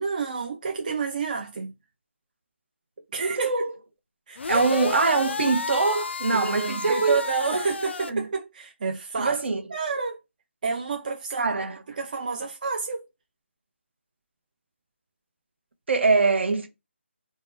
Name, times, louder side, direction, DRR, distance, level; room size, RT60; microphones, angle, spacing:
voice 1, 0.0-1.7 3.1-3.5 4.3-4.8 6.3-9.4 9.7-10.2 10.6-11.5 12.0-13.0, right 4 dB, 40° right, 0.4 m, -29 dB
voice 2, 3.2-3.7 4.5-7.2 7.5-7.6 8.1-8.3 9.2-9.6 11.4-11.8 15.9-16.7, right 3 dB, 65° right, 0.8 m, -23 dB
sound 1, 4.4-8.1, left 4 dB, 65° left, 0.4 m, -31 dB
2.7 x 2.2 x 3.2 m
figure-of-eight pair, 165°, 7 cm